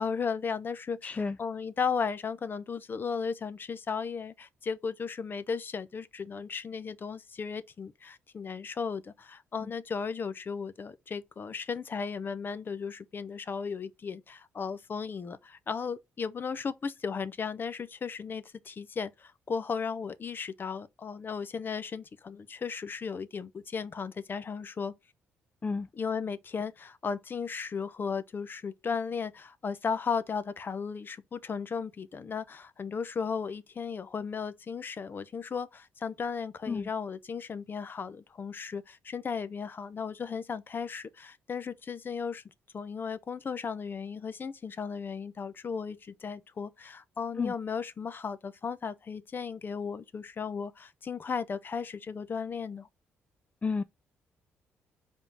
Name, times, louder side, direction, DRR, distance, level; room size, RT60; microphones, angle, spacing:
voice 1, 0.0-24.9 25.9-42.4 42.7-52.9, left 5 dB, 45° left, 0.8 m, -35 dB
voice 2, 1.0-1.4 9.6-9.7 25.6-25.9 36.7-36.9 47.4-47.5 53.6-53.8, left 4 dB, 25° left, 0.4 m, -31 dB
5.0 x 3.7 x 5.5 m
supercardioid pair, 65°, 5 cm